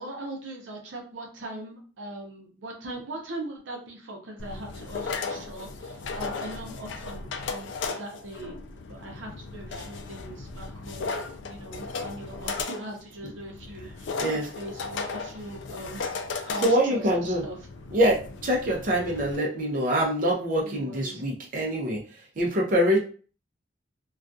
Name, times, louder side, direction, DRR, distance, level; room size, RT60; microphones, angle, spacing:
voice 1, 0.0-17.6 20.6-21.2, right 1 dB, 85° right, 1 dB, 0.7 m, -40 dB
sound 1, 4.4-19.4, left 4 dB, 75° left, 0.4 m, -36 dB
voice 2, 16.6-17.4 17.9-22.0 22.4-23.0, equal, 45° right, -2 dB, 0.6 m, -24 dB
2.3 x 2.3 x 2.6 m, 0.40 s
head